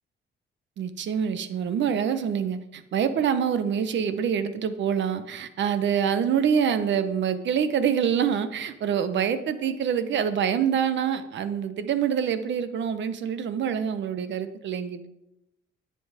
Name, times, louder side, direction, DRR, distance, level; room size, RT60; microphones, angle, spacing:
voice 1, 0.8-15.1, right 8 dB, 65° right, 11 dB, 1.0 m, -26 dB
10.0 x 7.1 x 5.0 m, 0.87 s
cardioid pair, 90°, 20 cm